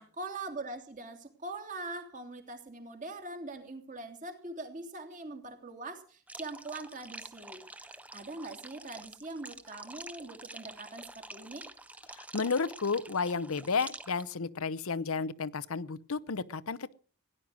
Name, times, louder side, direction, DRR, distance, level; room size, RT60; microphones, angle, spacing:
voice 1, 0.0-11.7, right 2 dB, 35° right, 2.9 m, -42 dB
sound 1, 6.3-14.3, right 2 dB, 5° right, 0.7 m, -47 dB
voice 2, 12.1-16.9, left 4 dB, 70° left, 0.7 m, -32 dB
17.5 x 11.0 x 6.2 m
head